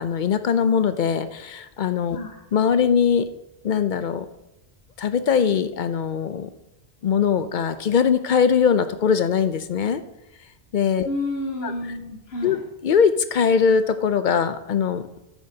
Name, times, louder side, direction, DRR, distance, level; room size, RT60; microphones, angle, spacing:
voice 1, 0.0-2.2 2.5-3.3 3.6-4.3 5.0-6.5 7.0-10.0 10.7-11.1 11.6-11.7 12.4-12.6 12.8-15.2, left 7 dB, 55° left, 11 dB, 0.7 m, -21 dB
voice 2, 11.0-12.6, left 2 dB, 75° left, 1 dB, 1.4 m, -30 dB
13.0 x 9.4 x 2.8 m, 0.96 s
omnidirectional pair, 1.1 m